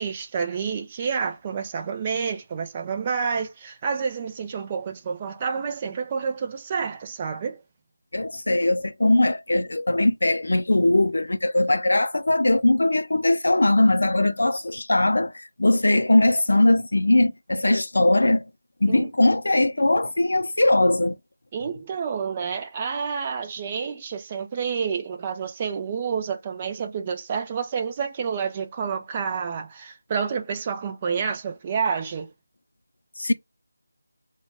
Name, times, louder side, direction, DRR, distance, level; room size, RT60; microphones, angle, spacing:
voice 1, 0.0-7.6 18.9-19.1 21.5-32.3, right 6 dB, 25° right, 0.6 m, -29 dB
voice 2, 8.1-18.5 18.8-21.2 33.2-33.3, left 2 dB, 75° left, 0.5 m, -20 dB
4.3 x 2.3 x 3.5 m
figure-of-eight pair, 170°, 0 cm